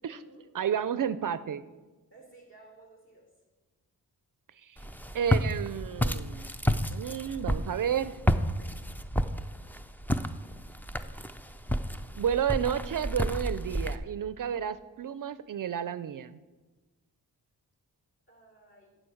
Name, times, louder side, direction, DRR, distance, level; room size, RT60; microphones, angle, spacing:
voice 1, 0.0-0.5 2.1-3.3 8.6-8.8 18.3-19.0, right 2 dB, 30° left, -1 dB, 3.6 m, -55 dB
voice 2, 0.5-1.6 4.6-4.8 5.1-6.5 6.9-8.2 12.1-16.4, right 8 dB, 55° right, 14 dB, 0.4 m, -31 dB
Walk footsteps, 4.8-14.0, equal, 5° left, 0.4 m, -31 dB
13.0 x 7.7 x 6.4 m, 1.3 s
wide cardioid pair, 165°, 38 cm